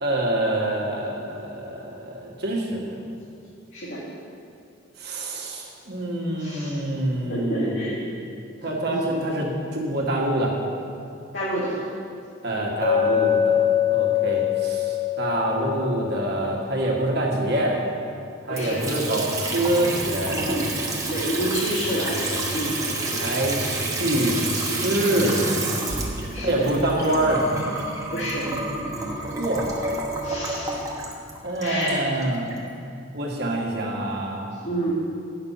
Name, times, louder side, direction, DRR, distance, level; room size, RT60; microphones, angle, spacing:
voice 1, 0.0-3.0 5.0-7.9 8.6-10.5 12.4-17.8 18.4-20.6 23.2-25.9 26.4-27.5 29.4-29.8 31.4-32.5 33.1-34.4, right 1 dB, 55° right, -2 dB, 1.5 m, -26 dB
voice 2, 3.7-4.0 6.4-6.8 7.3-8.0 8.9-9.1 11.3-11.8 18.5-18.8 21.1-22.7 26.3-26.7 28.1-28.5 30.2-30.8 31.6-32.0 34.6-34.9, equal, 75° left, -11 dB, 2.1 m, -28 dB
Chink clink, 12.8-16.8, left 9 dB, 15° left, 1.1 m, -23 dB
Water tap faucet / Sink (filling or washing) / Trickle dribble, 18.5-32.6, right 2 dB, 15° right, 1.0 m, -29 dB
9.7 x 6.6 x 5.6 m, 2.5 s
head